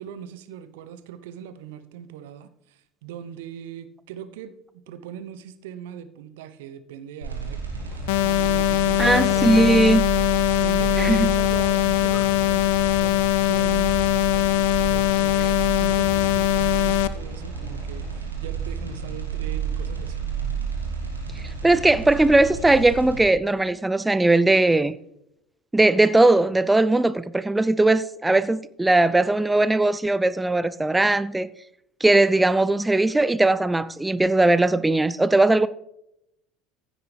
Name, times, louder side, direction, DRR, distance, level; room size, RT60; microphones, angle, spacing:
voice 1, 0.0-7.6 7.9-9.8 10.6-20.3, right 9 dB, 65° right, 0.8 m, -40 dB
sound 1, 7.2-23.2, right 6 dB, 85° right, 2.6 m, -31 dB
sound 2, 7.8-18.2, left 4 dB, 30° left, 2.7 m, -50 dB
sound 3, 8.1-17.1, left 14 dB, 65° left, 0.5 m, -21 dB
voice 2, 9.0-10.0 11.0-11.3 15.4-15.5 21.4-25.0 25.7-31.5 32.0-35.7, right 2 dB, 10° right, 0.4 m, -19 dB
15.5 x 8.9 x 3.3 m
figure-of-eight pair, 70°, 0 cm